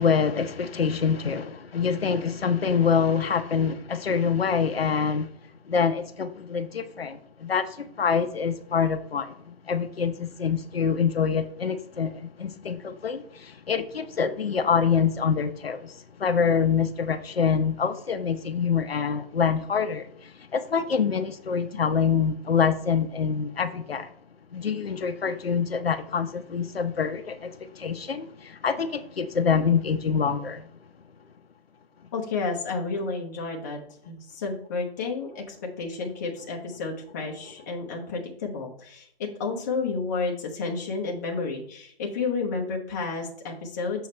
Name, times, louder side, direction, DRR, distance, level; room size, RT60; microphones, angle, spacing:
voice 1, 0.0-5.3 5.6-24.1 24.5-30.7, left 6 dB, 75° left, 0.8 m, -26 dB
voice 2, 32.1-33.8 34.1-44.1, left 4 dB, 20° left, 0.8 m, -31 dB
7.0 x 5.5 x 3.2 m
hypercardioid pair, 155°, 30 cm